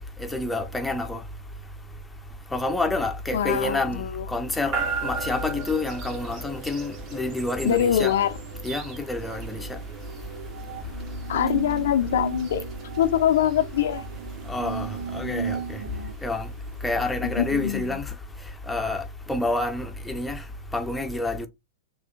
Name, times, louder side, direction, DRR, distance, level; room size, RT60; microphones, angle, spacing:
voice 1, 0.2-1.2 2.5-4.0 4.3-8.1 8.6-9.8 14.5-15.8 16.2-16.5 16.8-18.1 18.7-20.4 20.7-21.5, left 2 dB, 5° left, 0.6 m, -28 dB
voice 2, 3.3-4.3 7.6-8.4 11.3-12.6 13.0-14.0 17.2-18.0, left 10 dB, 55° left, 0.5 m, -24 dB
sound 1, 4.7-17.7, right 5 dB, 35° right, 1.0 m, -38 dB
sound 2, 10.1-16.1, right 7 dB, 75° right, 0.3 m, -35 dB
6.1 x 2.4 x 2.4 m
figure-of-eight pair, 100°, 0 cm